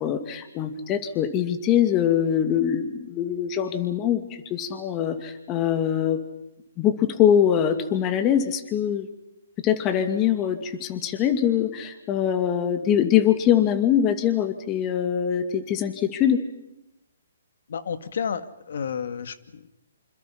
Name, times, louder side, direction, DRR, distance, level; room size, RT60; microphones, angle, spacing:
voice 1, 0.0-6.2 6.8-9.1 9.6-16.4, left 9 dB, 25° left, 8 dB, 2.4 m, -23 dB
voice 2, 17.7-19.7, left 7 dB, 65° left, 11 dB, 1.9 m, -31 dB
27.0 x 27.0 x 5.7 m, 0.88 s
hypercardioid pair, 145°, 0 cm